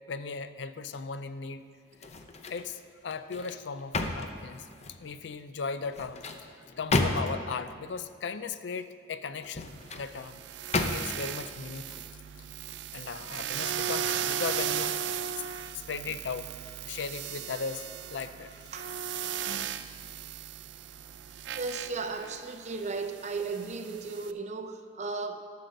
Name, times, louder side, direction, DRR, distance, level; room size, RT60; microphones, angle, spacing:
voice 1, 0.0-1.7 2.0-2.1 2.5-4.7 5.0-6.2 6.8-10.4 10.9-12.0 12.9-15.0 15.4-15.5 15.7-16.5 16.8-18.5 19.5-20.1, left 5 dB, 75° left, 12 dB, 0.5 m, -37 dB
sound 1, 1.9-2.7 3.1-5.1 5.8-7.5 9.3-10.1 10.7-11.3 11.8-12.0, left 2 dB, 40° left, 0.7 m, -32 dB
sound 2, 9.7-24.3, right 9 dB, 90° right, 0.4 m, -37 dB
voice 2, 21.5-25.4, right 4 dB, 40° right, 7 dB, 0.7 m, -35 dB
12.0 x 6.6 x 6.4 m, 2.2 s
head